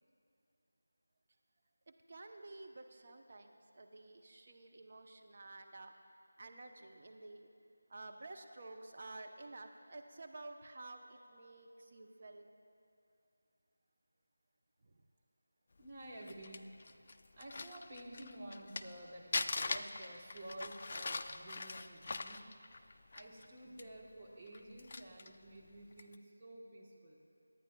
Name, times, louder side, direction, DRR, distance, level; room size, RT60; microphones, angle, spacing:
voice 1, 2.1-5.9 6.4-7.5 7.9-12.5 14.8-14.9, right 2 dB, 45° right, 4 dB, 0.7 m, -52 dB
voice 2, 15.8-16.7 17.3-22.5 23.1-27.2, right 1 dB, 25° right, -3 dB, 1.2 m, -51 dB
Crumpling crinkling, 16.0-19.0 19.3-23.5 23.8-23.9 24.5-25.4 25.9-26.2, left 3 dB, 40° left, 0.3 m, -41 dB
21.0 x 9.0 x 2.2 m, 2.7 s
figure-of-eight pair, 170°, 0 cm